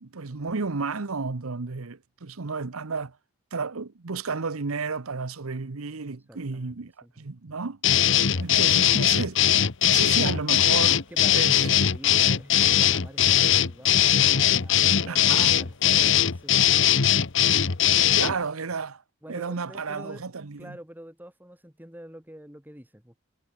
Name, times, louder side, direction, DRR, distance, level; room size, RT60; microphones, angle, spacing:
voice 1, 0.0-3.2 3.5-7.8 8.4-9.4 9.8-11.0 11.3-11.7 15.1-15.5 18.2-19.0 19.3-20.8, right 4 dB, 90° right, 1.0 m, -32 dB
voice 2, 6.3-7.3 10.7-16.7 19.2-20.2 20.6-23.2, equal, 10° right, 4.2 m, -46 dB
sound 1, 7.8-18.3, left 10 dB, 60° left, 1.1 m, -20 dB
head